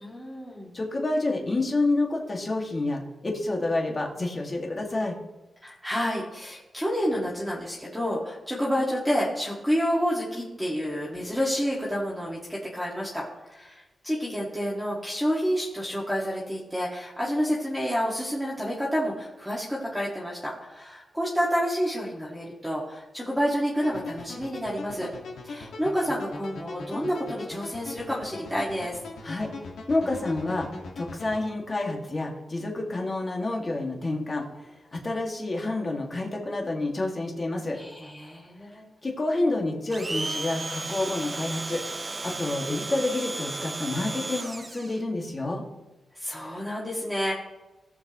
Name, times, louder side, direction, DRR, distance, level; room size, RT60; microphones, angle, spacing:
voice 1, 0.0-0.7 5.6-25.1 25.4-29.0 37.7-38.8 46.2-47.3, equal, ahead, -5 dB, 2.0 m, -29 dB
voice 2, 0.7-5.2 29.2-29.5 29.9-30.7 31.0-37.8 39.0-45.6, left 2 dB, 30° left, 0 dB, 2.1 m, -29 dB
sound 1, 23.8-31.4, left 3 dB, 85° left, 1.8 m, -40 dB
Domestic sounds home sounds, 39.9-45.0, right 2 dB, 25° right, 0.5 m, -34 dB
18.0 x 7.0 x 3.1 m, 1.0 s
wide cardioid pair, 115°, 0 cm